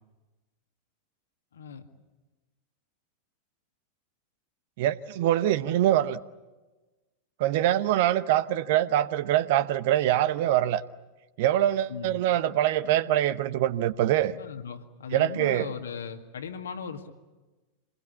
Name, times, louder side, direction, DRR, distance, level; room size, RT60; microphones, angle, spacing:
voice 1, 1.5-1.9 11.9-12.2 14.3-17.1, left 6 dB, 65° left, 2.0 m, -38 dB
voice 2, 4.8-6.2 7.4-10.8 11.4-14.3 15.1-15.7, right 12 dB, 50° right, 0.9 m, -24 dB
27.0 x 21.0 x 8.6 m
figure-of-eight pair, 90°, 0 cm